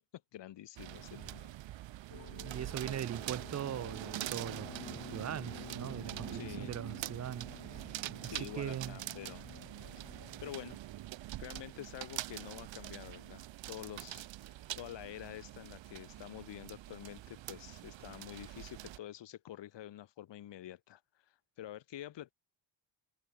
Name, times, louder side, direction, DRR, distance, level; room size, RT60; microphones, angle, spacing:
voice 1, 0.3-1.6 6.3-6.7 8.2-9.5 10.4-10.8 11.4-22.3, left 12 dB, 60° left, 1.3 m, -48 dB
sound 1, 0.8-19.0, right 15 dB, 65° right, 0.8 m, -45 dB
sound 2, 2.1-10.7, left 7 dB, 35° left, 1.3 m, -51 dB
voice 2, 2.3-9.0, right 10 dB, 35° right, 0.5 m, -41 dB
wide cardioid pair, 160°, 49 cm